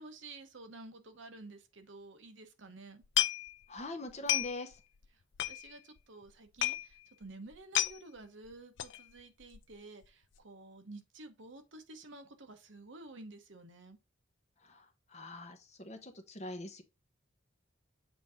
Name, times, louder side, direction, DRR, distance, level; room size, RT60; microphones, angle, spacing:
voice 1, 0.0-3.0 5.1-5.2 5.5-14.0, right 2 dB, 70° right, 1.0 m, -51 dB
sound 1, 3.0-3.8 4.1-4.7 5.0-5.1 5.4-6.0 6.3-6.4 6.6-6.9 7.2-7.3 7.5-8.0 8.8-9.0 9.4-9.7 10.0-10.1, left 13 dB, 65° left, 0.4 m, -32 dB
voice 2, 3.7-4.7 15.1-16.8, left 2 dB, 35° left, 0.9 m, -42 dB
7.3 x 2.7 x 4.8 m
head